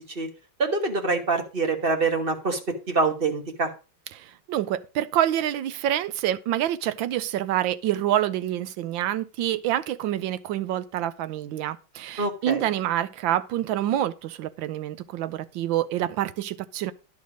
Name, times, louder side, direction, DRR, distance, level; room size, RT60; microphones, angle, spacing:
voice 1, 0.6-2.6 2.9-3.7 12.2-12.7, right 3 dB, 30° right, 1.4 m, -25 dB
voice 2, 4.1-16.9, right 12 dB, 80° right, 1.4 m, -27 dB
11.0 x 6.4 x 5.1 m
omnidirectional pair, 2.1 m